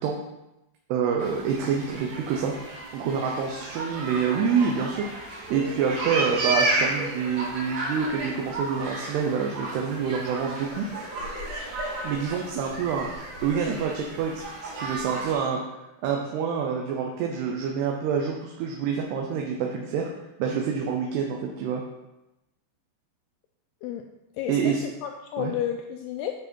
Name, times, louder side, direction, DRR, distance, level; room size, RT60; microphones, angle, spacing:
voice 1, 0.9-2.5 2.9-10.9 12.0-15.7 16.0-20.1 20.4-21.8 24.5-24.9 25.4-25.5, right 6 dB, 75° right, 1 dB, 2.7 m, -27 dB
sound 1, 1.2-15.3, right 2 dB, 50° right, 2.8 m, -33 dB
voice 2, 24.4-26.4, left 10 dB, 85° left, 4 dB, 2.3 m, -31 dB
9.7 x 6.1 x 4.5 m, 0.95 s
omnidirectional pair, 5.1 m